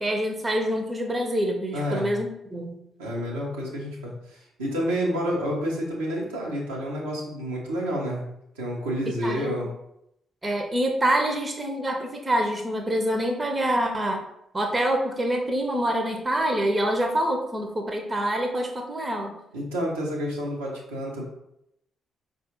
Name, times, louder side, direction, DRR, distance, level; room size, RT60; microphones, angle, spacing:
voice 1, 0.0-2.8 9.1-9.6 10.4-14.2 14.5-19.3, right 1 dB, 25° right, 4 dB, 0.6 m, -26 dB
voice 2, 1.7-2.2 3.0-8.2 8.5-9.7 19.5-21.2, equal, 80° right, -4 dB, 0.7 m, -29 dB
4.7 x 2.4 x 2.9 m, 0.81 s
figure-of-eight pair, 40°, 0 cm